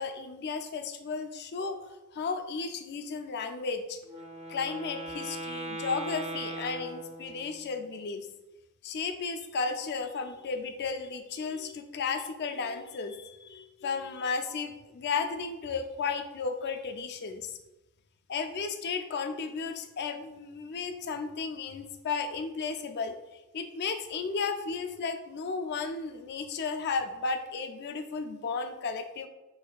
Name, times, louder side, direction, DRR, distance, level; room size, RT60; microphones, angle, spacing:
voice 1, 0.0-4.0 4.5-8.3 8.8-17.5 18.3-23.1 23.5-29.3, left 5 dB, 50° left, 6 dB, 0.4 m, -34 dB
Wind instrument woodwind instrument, 4.0-7.7, right 1 dB, 25° right, 0.6 m, -39 dB
6.2 x 2.6 x 2.3 m, 0.99 s
head